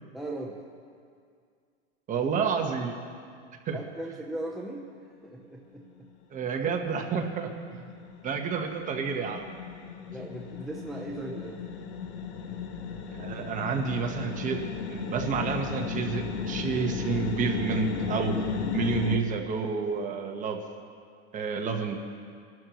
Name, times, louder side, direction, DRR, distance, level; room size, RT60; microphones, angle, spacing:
voice 1, 0.1-0.6 3.7-4.9 5.2-6.1 10.1-11.6, right 1 dB, ahead, -3 dB, 0.7 m, -38 dB
voice 2, 2.1-2.9 3.6-3.8 6.3-7.9 8.2-9.5 13.1-14.6 14.9-18.4 18.7-20.6 21.3-21.9, right 5 dB, 25° right, 3 dB, 1.3 m, -30 dB
sound 1, 5.9-6.0 6.3-19.2, left 5 dB, 75° left, 1.4 m, -35 dB
25.5 x 12.0 x 3.1 m, 2.2 s
supercardioid pair, 145°, 34 cm